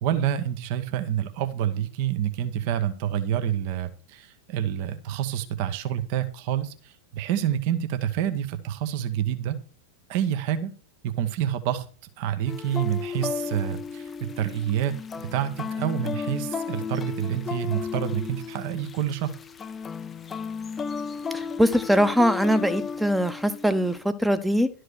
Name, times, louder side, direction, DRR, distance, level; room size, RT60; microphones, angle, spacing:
voice 1, 0.0-9.6 10.1-10.7 11.0-11.9 12.2-14.1 14.4-14.9 15.3-19.3, right 10 dB, 45° right, 1.0 m, -28 dB
sound 1, 12.5-24.0, left 6 dB, 20° left, 0.5 m, -34 dB
voice 2, 21.3-24.7, equal, ahead, 0.8 m, -22 dB
12.0 x 4.8 x 6.2 m
figure-of-eight pair, 90°, 0 cm